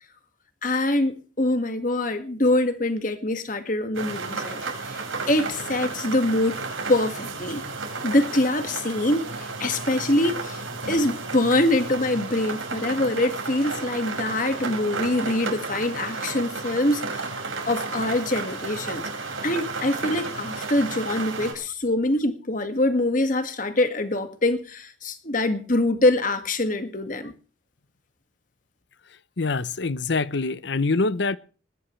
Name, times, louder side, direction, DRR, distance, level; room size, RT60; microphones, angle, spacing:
voice 1, 0.6-6.6 6.9-7.6 8.0-17.3 17.7-19.1 19.4-27.3, left 1 dB, 40° left, 1.9 m, -24 dB
sound 1, 3.9-21.5, right 3 dB, 90° right, 5.9 m, -33 dB
voice 2, 29.4-31.4, left 3 dB, 60° left, 0.7 m, -24 dB
20.5 x 17.5 x 3.2 m
head